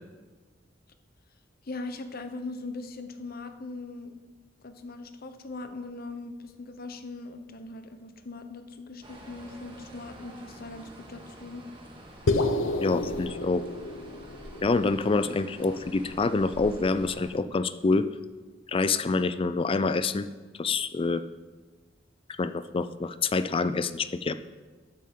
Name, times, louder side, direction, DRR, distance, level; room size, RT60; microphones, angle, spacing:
voice 1, 1.6-4.2 4.6-11.6, left 3 dB, 50° left, 8 dB, 0.9 m, -40 dB
sound 1, 9.0-17.3, right 1 dB, 25° right, 1.8 m, -47 dB
sound 2, 12.3-16.6, left 2 dB, 90° left, 0.7 m, -31 dB
voice 2, 12.8-13.6 14.6-18.1 18.7-20.3 20.6-21.2 22.4-24.3, left 3 dB, 30° left, 13 dB, 0.4 m, -26 dB
12.5 x 9.8 x 3.8 m, 1.4 s
head